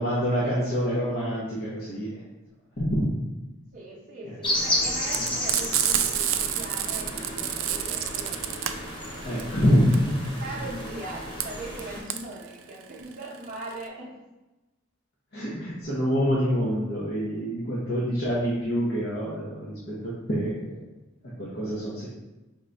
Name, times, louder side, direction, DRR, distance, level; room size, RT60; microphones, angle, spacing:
voice 1, 0.0-2.2 2.8-3.1 4.3-4.4 5.2-5.3 9.2-10.1 15.3-20.7 21.4-22.1, equal, 55° left, -7 dB, 0.9 m, -26 dB
voice 2, 3.7-8.6 10.4-14.1, right 2 dB, 45° right, -6 dB, 0.7 m, -40 dB
sound 1, 4.4-12.0, left 1 dB, 25° left, 0.9 m, -32 dB
Frying (food), 5.1-13.8, right 11 dB, 80° right, 0.3 m, -28 dB
5.1 x 2.6 x 3.3 m, 1.1 s
head